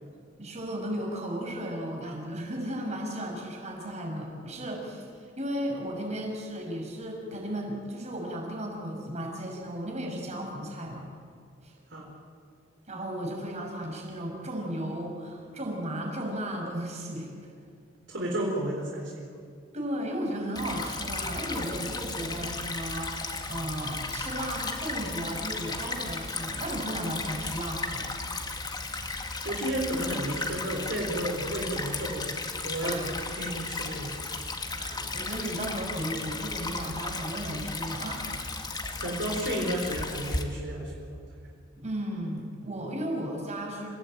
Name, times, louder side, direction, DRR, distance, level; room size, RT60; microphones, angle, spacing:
voice 1, 0.4-11.0 11.6-11.7 12.9-17.5 19.7-28.2 32.8-33.1 34.8-38.5 41.7-43.9, right 1 dB, 35° right, 0 dB, 6.1 m, -35 dB
voice 2, 18.1-19.3 29.4-32.3 32.6-33.1 33.3-34.2 38.9-41.1, right 1 dB, 65° right, -1 dB, 4.1 m, -32 dB
Stream / Trickle dribble, 20.6-40.4, left 3 dB, 20° left, 2.0 m, -35 dB
28.5 x 16.5 x 9.0 m, 2.2 s
head